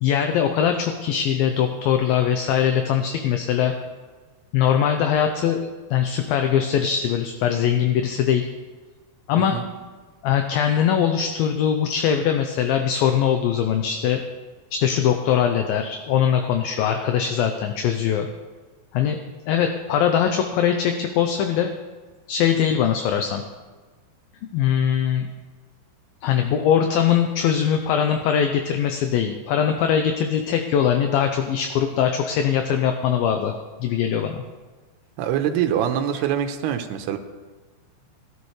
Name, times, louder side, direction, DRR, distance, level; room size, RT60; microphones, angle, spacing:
voice 1, 0.0-3.7 4.5-8.5 9.3-9.6 10.2-14.2 14.7-18.3 18.9-19.2 19.5-21.7 22.3-23.4 24.5-25.3 26.2-33.5 33.8-34.4, left 8 dB, 75° left, 5 dB, 2.3 m, -21 dB
voice 2, 35.2-37.2, right 9 dB, 80° right, 6 dB, 2.9 m, -24 dB
20.0 x 12.5 x 3.3 m, 1.3 s
omnidirectional pair, 4.7 m